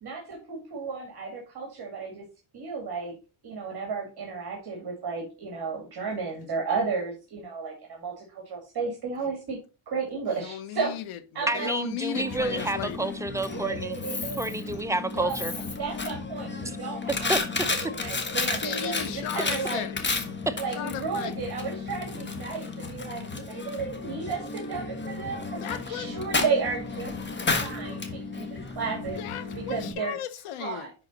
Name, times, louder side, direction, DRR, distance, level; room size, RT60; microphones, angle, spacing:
voice 1, 0.0-2.2 2.5-3.1 3.4-9.6 9.9-10.9 11.3-11.7 12.1-12.7 13.5-14.4 15.1-15.4 15.8-17.3 17.6-19.9 20.6-27.1 27.6-29.2 29.5-30.2 30.6-30.9, right 5 dB, 50° right, 2.5 m, -33 dB
voice 2, 10.3-13.1 18.6-20.0 20.7-21.3 25.6-26.1 29.2-30.9, left 11 dB, 90° left, 1.1 m, -36 dB
voice 3, 11.5-14.0 14.4-15.5 16.6-16.8 17.3-17.4 20.5-20.6, right 2 dB, 5° right, 0.5 m, -29 dB
Coin (dropping), 12.2-29.9, left 4 dB, 20° left, 1.3 m, -33 dB
10.5 x 4.0 x 4.0 m
cardioid pair, 125°, 49 cm